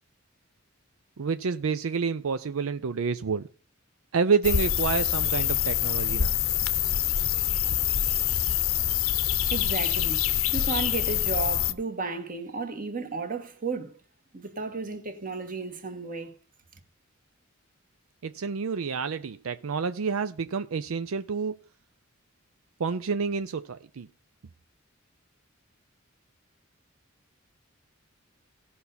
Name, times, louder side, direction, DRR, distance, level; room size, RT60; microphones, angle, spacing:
voice 1, 1.2-3.4 4.1-6.4 18.2-21.6 22.8-24.1, right 5 dB, 80° right, 0.5 m, -28 dB
sound 1, 4.4-11.7, left 10 dB, 85° left, 0.8 m, -25 dB
voice 2, 9.5-10.2 10.5-13.9 14.3-16.4, right 4 dB, 40° right, 1.7 m, -33 dB
16.5 x 5.7 x 4.0 m
head